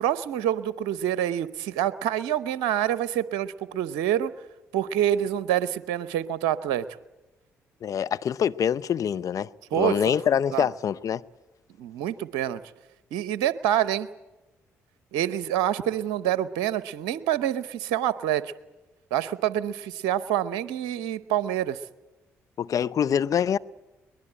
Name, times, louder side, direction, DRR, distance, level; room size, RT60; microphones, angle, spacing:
voice 1, 0.0-4.3 4.7-6.9 9.7-10.2 10.5-10.7 11.8-12.6 13.1-14.1 15.1-18.5 19.1-21.8, right 11 dB, 80° right, 0.7 m, -26 dB
voice 2, 7.8-9.5 9.8-11.2 22.6-23.6, left 8 dB, 55° left, 0.7 m, -25 dB
22.5 x 20.0 x 8.9 m
hypercardioid pair, 50°, 7 cm